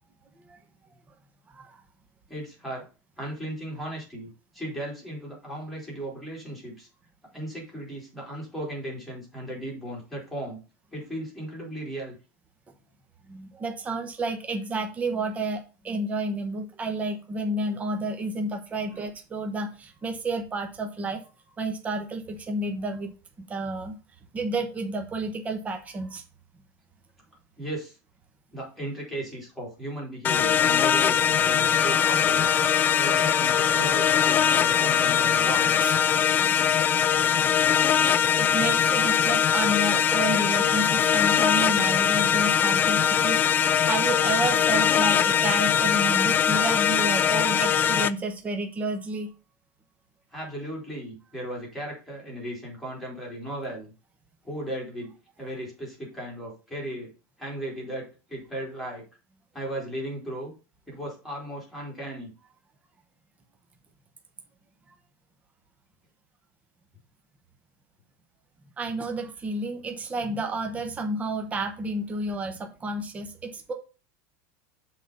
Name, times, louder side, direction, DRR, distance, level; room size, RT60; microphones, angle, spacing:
voice 1, 1.5-1.8 13.3-21.2 21.6-24.0 24.3-26.2 35.8-36.0 36.4-36.6 37.9-49.3 68.8-73.7, right 2 dB, 15° right, 4 dB, 1.0 m, -31 dB
voice 2, 2.3-2.9 3.2-6.9 7.3-10.6 10.9-12.2 18.9-19.0 27.6-28.0 28.5-32.5 33.0-35.8 50.3-53.9 54.4-57.1 57.4-59.0 59.5-60.5 60.9-62.3, right 1 dB, ahead, -4 dB, 3.8 m, -36 dB
sound 1, 30.2-48.1, left 8 dB, 25° left, 0.3 m, -22 dB
Trumpet, 31.7-35.9, left 10 dB, 50° left, 1.3 m, -34 dB
7.4 x 4.1 x 5.5 m, 0.33 s
supercardioid pair, 150°, 8 cm